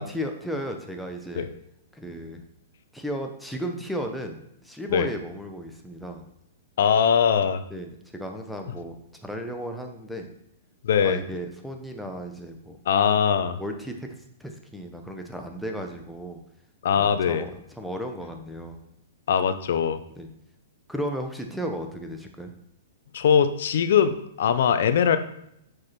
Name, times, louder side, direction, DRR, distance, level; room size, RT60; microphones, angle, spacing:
voice 1, 0.0-1.5 1.9-2.4 2.9-6.2 7.7-9.0 9.2-10.3 11.0-12.8 13.6-14.1 14.4-16.4 17.0-17.5 17.8-18.8 20.2-20.3 20.9-22.5, equal, ahead, 3 dB, 0.9 m, -34 dB
voice 2, 6.8-7.6 10.8-11.2 12.9-13.6 16.8-17.5 19.3-20.0 23.1-25.2, left 7 dB, 65° left, 11 dB, 0.6 m, -21 dB
6.1 x 4.8 x 4.3 m, 0.77 s
hypercardioid pair, 130°, 0 cm